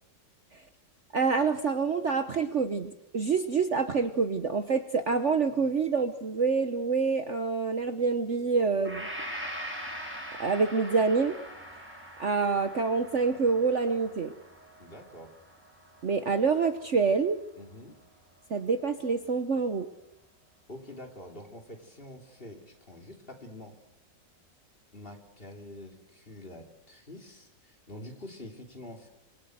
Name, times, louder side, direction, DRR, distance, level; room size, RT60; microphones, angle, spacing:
voice 1, 1.1-9.1 10.4-11.4 12.2-14.3 16.0-17.4 18.5-19.9, right 5 dB, 45° right, 9 dB, 1.3 m, -27 dB
Gong, 8.8-16.9, equal, 5° right, 5.8 m, -42 dB
voice 2, 14.8-15.3 17.6-18.0 20.7-23.7 24.9-29.1, left 1 dB, 30° left, 3 dB, 3.5 m, -46 dB
26.5 x 22.0 x 8.0 m, 0.83 s
omnidirectional pair, 1.9 m